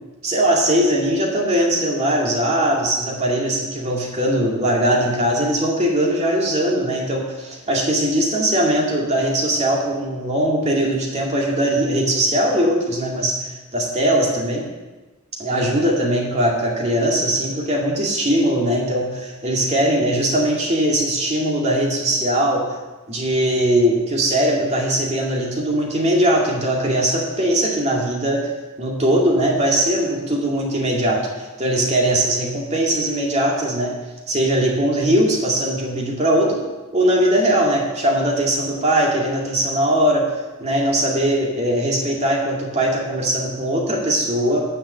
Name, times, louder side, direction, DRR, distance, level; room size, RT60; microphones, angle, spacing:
voice 1, 0.2-13.4 13.7-14.7 15.4-22.6 23.1-28.5 28.8-31.3 31.6-33.9 34.3-36.6 36.9-40.3 40.6-44.6, right 1 dB, 30° right, -2 dB, 2.2 m, -20 dB
9.8 x 5.8 x 7.7 m, 1.2 s
head